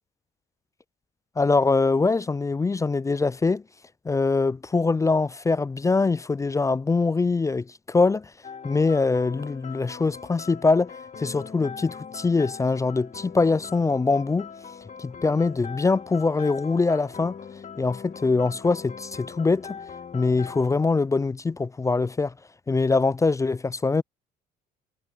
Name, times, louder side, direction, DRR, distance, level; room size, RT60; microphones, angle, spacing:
voice 1, 1.4-3.6 4.1-8.3 8.6-14.5 15.0-17.4 17.8-19.8 20.1-22.3 22.7-24.0, left 3 dB, 15° left, 0.4 m, -23 dB
sound 1, 8.4-20.7, left 6 dB, 40° left, 2.6 m, -41 dB
supercardioid pair, 75°, 19 cm